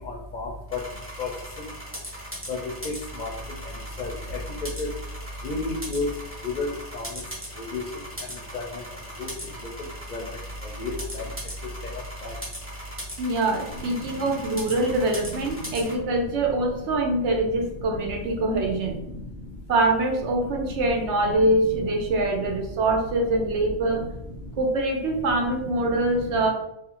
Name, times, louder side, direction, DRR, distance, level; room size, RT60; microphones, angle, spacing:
sound 1, 0.7-15.9, equal, 15° right, 0.8 m, -39 dB
voice 1, 5.4-6.1 6.4-6.7 6.9-7.0 7.7-7.8 8.5-8.7 9.2-9.3 10.1-10.2 10.8-11.2 12.2-12.3, left 3 dB, 55° left, -1 dB, 0.5 m, -29 dB
voice 2, 13.2-19.0 19.7-24.0 24.6-26.5, right 2 dB, 90° right, 2 dB, 0.9 m, -24 dB
2.4 x 2.3 x 2.8 m, 0.82 s
omnidirectional pair, 1.2 m